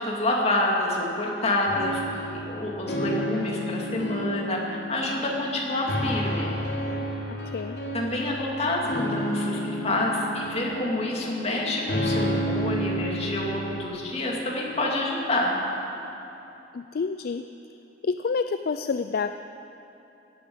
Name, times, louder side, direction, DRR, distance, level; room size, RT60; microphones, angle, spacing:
voice 1, 0.0-6.5 7.9-15.6, left 1 dB, 35° left, -2 dB, 2.5 m, -27 dB
sound 1, 1.7-13.9, equal, 85° left, 2.9 m, -31 dB
voice 2, 7.3-7.8 16.7-17.4 18.0-19.4, left 5 dB, 60° left, 10 dB, 0.4 m, -28 dB
17.5 x 9.2 x 7.9 m, 2.9 s
head